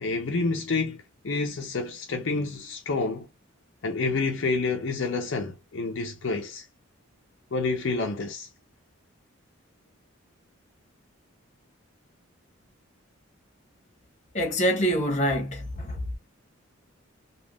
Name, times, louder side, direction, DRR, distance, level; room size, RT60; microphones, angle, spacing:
voice 1, 0.0-3.3 3.8-6.7 7.5-8.5, left 3 dB, 60° left, 0.5 m, -28 dB
voice 2, 14.3-16.0, equal, 35° left, 1.0 m, -25 dB
3.5 x 2.2 x 2.2 m
head